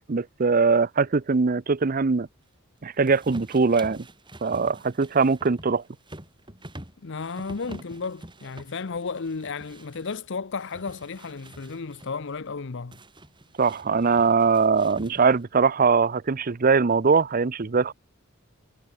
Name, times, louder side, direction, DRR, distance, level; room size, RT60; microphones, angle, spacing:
voice 1, 0.1-2.3 2.8-4.0 4.4-5.8 13.6-17.9, right 4 dB, 40° right, 0.6 m, -21 dB
sound 1, 3.0-10.2 10.6-12.1 12.9-15.5, right 1 dB, 20° right, 5.3 m, -46 dB
voice 2, 7.0-13.0, left 4 dB, 60° left, 0.7 m, -33 dB
head